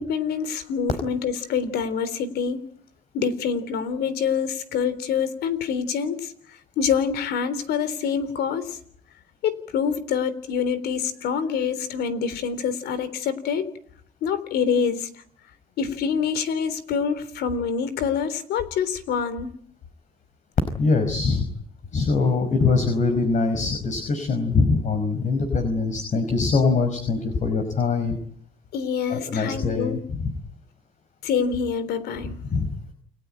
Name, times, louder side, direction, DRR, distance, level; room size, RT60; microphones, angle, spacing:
voice 1, 0.0-2.6 3.1-6.3 6.8-8.8 9.4-13.7 14.2-15.1 15.8-19.5 28.7-30.0 31.2-32.4, left 6 dB, 75° left, 15 dB, 3.6 m, -26 dB
voice 2, 20.8-21.5 21.9-28.2 29.1-30.3 32.5-32.7, left 4 dB, 45° left, 8 dB, 5.1 m, -23 dB
29.5 x 19.0 x 8.9 m, 0.62 s
cardioid pair, 110°, 17 cm